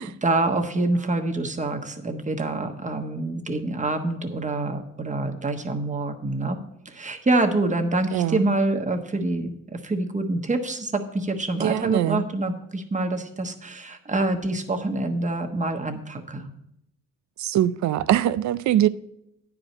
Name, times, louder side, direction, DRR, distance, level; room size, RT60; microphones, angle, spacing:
voice 1, 0.0-6.6 6.8-16.5, right 2 dB, 25° right, 1.3 m, -26 dB
voice 2, 8.1-8.4 11.6-12.2 17.4-18.9, right 12 dB, 70° right, 0.5 m, -22 dB
9.7 x 5.0 x 7.1 m
cardioid pair, 90°, 30 cm